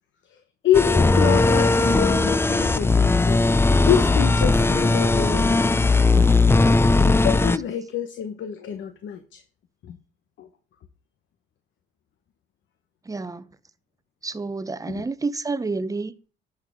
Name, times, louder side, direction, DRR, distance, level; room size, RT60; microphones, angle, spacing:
voice 1, 0.3-3.4 3.8-6.3 6.9-9.4 9.8-10.0 10.4-10.5 14.9-15.0, left 9 dB, 70° left, 1.1 m, -27 dB
sound 1, 0.7-7.6, left 3 dB, 10° left, 0.5 m, -18 dB
voice 2, 13.1-13.5 14.2-16.3, right 3 dB, 15° right, 0.8 m, -29 dB
11.5 x 7.4 x 3.7 m
cardioid pair, 90°, 20 cm